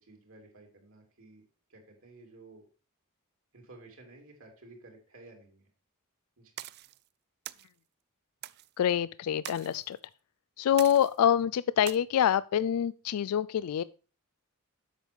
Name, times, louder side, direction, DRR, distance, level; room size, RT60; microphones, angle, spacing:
voice 1, 0.0-1.4 1.7-2.6 3.5-5.7 6.4-6.5, right 2 dB, 65° right, 3.1 m, -53 dB
sound 1, 6.6-7.0 7.4-7.7 8.4-8.7 9.4-9.8 10.8-11.2 11.9-12.0, right 13 dB, 45° right, 0.4 m, -43 dB
voice 2, 8.8-10.0 10.6-13.8, left 9 dB, 80° left, 0.3 m, -26 dB
8.1 x 6.4 x 5.2 m
head